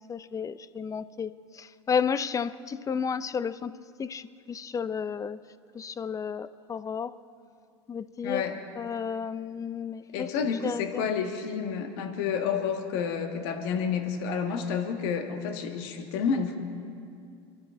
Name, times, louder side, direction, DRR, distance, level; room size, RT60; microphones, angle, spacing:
voice 1, 0.0-3.7 4.0-5.4 5.7-7.1 7.9-8.4 8.8-10.3 10.6-11.1, left 6 dB, 20° left, 15 dB, 0.5 m, -32 dB
voice 2, 8.2-8.6 10.1-16.6, left 6 dB, 65° left, 5 dB, 1.6 m, -30 dB
26.0 x 12.0 x 3.7 m, 2.4 s
hypercardioid pair, 85°, 15 cm